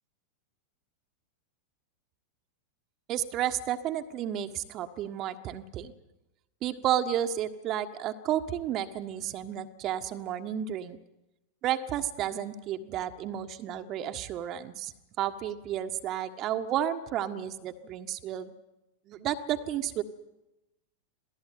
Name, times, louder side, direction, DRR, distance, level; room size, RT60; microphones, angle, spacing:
voice 1, 3.1-5.9 6.6-11.0 11.6-14.9 15.2-18.5 19.1-20.0, right 10 dB, 35° right, 8 dB, 1.5 m, -32 dB
27.0 x 17.5 x 9.4 m, 0.97 s
figure-of-eight pair, 90°, 0 cm